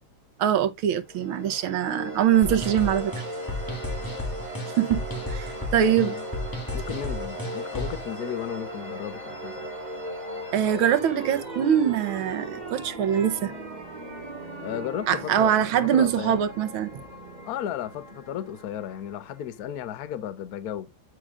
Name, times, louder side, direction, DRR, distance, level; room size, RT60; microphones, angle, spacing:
voice 1, 0.4-3.2 4.8-6.1 10.5-13.5 15.1-16.9, right 9 dB, 85° right, 1.7 m, -23 dB
sound 1, 1.1-19.7, right 1 dB, 20° right, 1.8 m, -38 dB
sound 2, 2.4-8.1, left 1 dB, 10° left, 1.6 m, -33 dB
voice 2, 5.8-6.2 6.7-9.5 14.6-16.4 17.4-20.9, left 10 dB, 60° left, 1.1 m, -34 dB
9.8 x 5.0 x 2.4 m
omnidirectional pair, 2.2 m